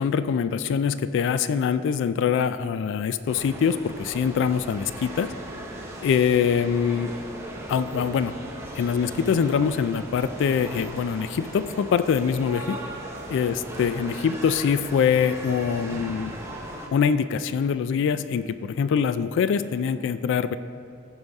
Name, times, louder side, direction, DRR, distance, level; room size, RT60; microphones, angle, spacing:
voice 1, 0.0-5.3 6.0-7.1 7.7-8.3 8.8-12.8 13.3-16.3 16.9-20.6, left 7 dB, 60° left, 13 dB, 0.3 m, -24 dB
sound 1, 3.3-16.9, right 1 dB, 15° right, 1.0 m, -38 dB
14.5 x 5.5 x 3.5 m, 2.4 s
head